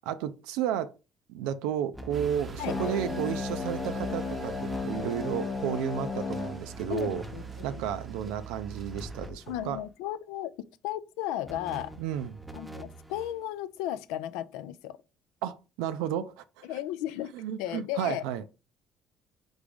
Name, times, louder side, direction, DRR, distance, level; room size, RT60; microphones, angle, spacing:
voice 1, 0.1-0.9 1.3-7.2 7.6-9.8 12.0-12.4 15.4-16.7 17.3-18.5, right 10 dB, 80° right, 0.3 m, -32 dB
sound 1, 1.9-3.2 3.5-3.6 4.0-4.8 5.1-5.4 6.7-7.9 8.9-9.9 11.4-13.4, equal, 5° right, 0.8 m, -46 dB
sound 2, 2.1-9.3, right 7 dB, 40° right, 0.6 m, -43 dB
sound 3, 2.6-7.6, left 4 dB, 35° left, 0.8 m, -35 dB
voice 2, 6.9-7.8 9.5-10.5 10.8-11.9 12.5-15.0 16.6-18.2, left 12 dB, 80° left, 0.3 m, -35 dB
3.9 x 3.5 x 3.5 m
supercardioid pair, 70°, 0 cm